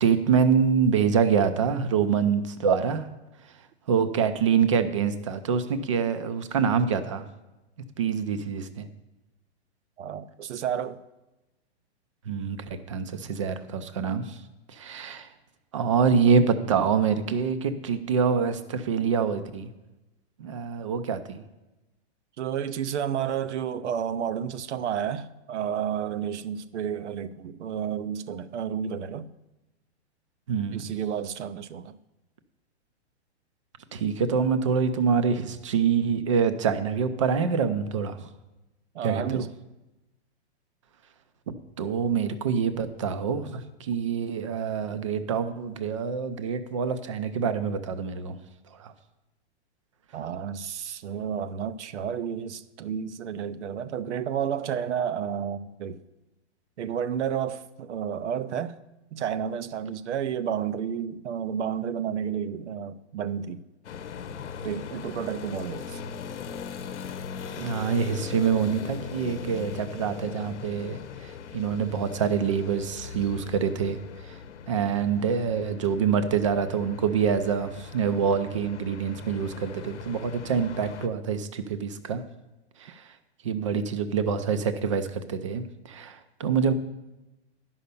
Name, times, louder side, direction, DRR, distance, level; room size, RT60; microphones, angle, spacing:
voice 1, 0.0-3.1 3.9-7.2 8.0-8.9 12.3-14.4 14.7-15.3 15.7-19.7 20.4-21.4 30.5-30.8 33.9-38.3 39.0-39.4 41.5-48.4 48.8-48.9 67.6-74.0 74.3-74.4 74.7-82.2 82.8-83.0 83.4-86.7, right 6 dB, 30° right, 0.4 m, -26 dB
voice 2, 10.0-11.0 22.4-29.3 30.7-32.0 38.9-39.5 50.1-56.0 56.8-58.8 59.1-63.6 64.6-66.0, right 8 dB, 85° right, 0.7 m, -31 dB
sound 1, 63.8-81.1, left 6 dB, 90° left, 0.8 m, -39 dB
10.5 x 5.6 x 6.7 m
hypercardioid pair, 170°, 34 cm